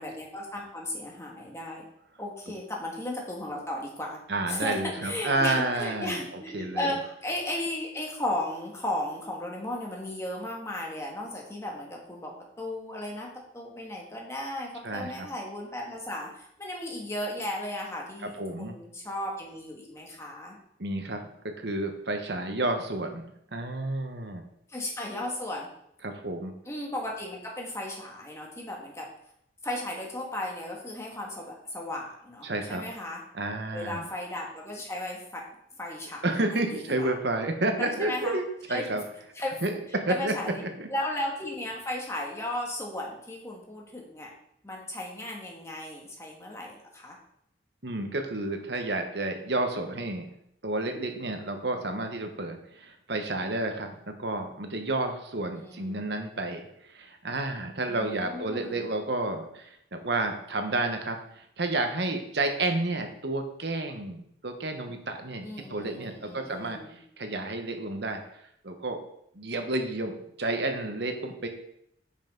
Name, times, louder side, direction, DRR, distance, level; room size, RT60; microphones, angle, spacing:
voice 1, 0.0-1.8 2.2-4.2 4.5-20.6 24.7-25.7 26.7-29.1 29.6-33.2 33.7-35.4 35.8-36.2 36.6-37.1 37.8-38.4 38.7-38.8 39.4-39.6 39.9-40.6 40.9-44.3 44.6-47.2 55.6-56.0 57.9-58.8 65.4-67.0, left 1 dB, 15° left, -1 dB, 1.8 m, -35 dB
voice 2, 4.3-6.9 14.8-15.3 18.2-18.8 20.8-21.2 21.6-24.4 26.0-26.5 32.4-32.8 33.3-34.0 36.2-39.0 39.6-40.3 40.8-40.9 47.8-50.3 50.6-53.9 54.2-61.2 61.6-66.8 67.2-68.2 68.6-69.0 69.3-71.5, right 2 dB, 65° right, 5 dB, 1.2 m, -30 dB
9.9 x 5.6 x 3.9 m, 0.74 s
head